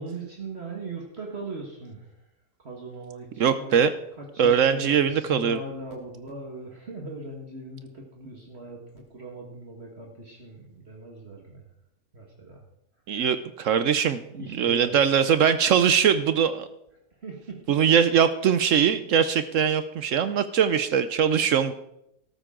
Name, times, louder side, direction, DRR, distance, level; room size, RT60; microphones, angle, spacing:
voice 1, 0.0-2.2 2.6-11.6 12.1-12.6 14.3-15.2 17.2-17.8, right 3 dB, 45° right, 0 dB, 1.9 m, -39 dB
voice 2, 3.4-3.9 4.4-5.6 13.1-14.2 14.5-16.7 17.7-21.7, right 7 dB, 65° right, 12 dB, 1.0 m, -21 dB
13.0 x 13.0 x 3.8 m, 0.79 s
omnidirectional pair, 1.5 m